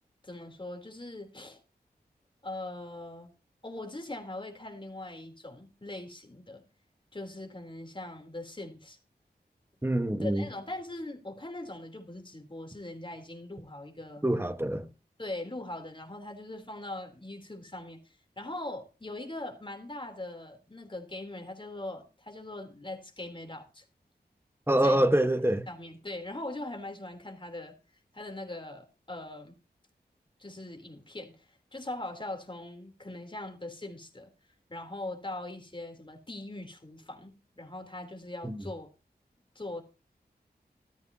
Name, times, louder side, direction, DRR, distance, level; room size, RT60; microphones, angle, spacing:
voice 1, 0.2-1.6 2.4-3.3 3.6-6.6 7.1-9.0 10.2-14.2 15.2-23.8 24.8-27.7 28.1-29.5 30.4-34.3 34.7-38.9 39.5-39.8, left 2 dB, 30° left, 3.3 m, -41 dB
voice 2, 9.8-10.4 14.2-14.9 24.7-25.6 38.4-38.6, right 1 dB, 15° right, 1.2 m, -25 dB
13.5 x 13.5 x 2.8 m
wide cardioid pair, 65°, 17 cm